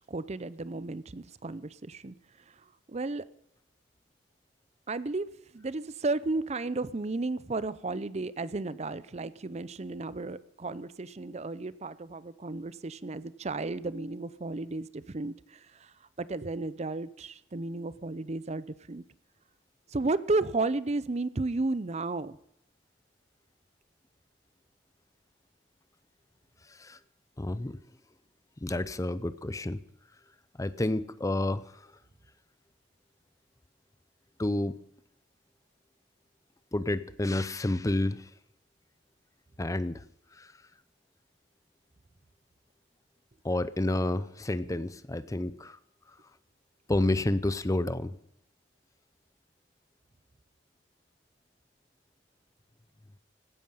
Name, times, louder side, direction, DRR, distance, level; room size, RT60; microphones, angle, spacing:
voice 1, 0.0-2.1 2.9-3.2 4.9-5.3 5.5-19.0 19.9-22.4, right 3 dB, 35° right, 17 dB, 0.6 m, -33 dB
voice 2, 26.7-27.0 27.4-27.8 28.6-29.8 30.6-31.9 34.4-34.8 36.7-38.3 39.6-40.0 40.3-40.5 43.4-45.8 46.1-46.2 46.9-48.2, left 1 dB, 15° left, 15 dB, 0.5 m, -30 dB
16.5 x 13.0 x 5.6 m, 0.75 s
head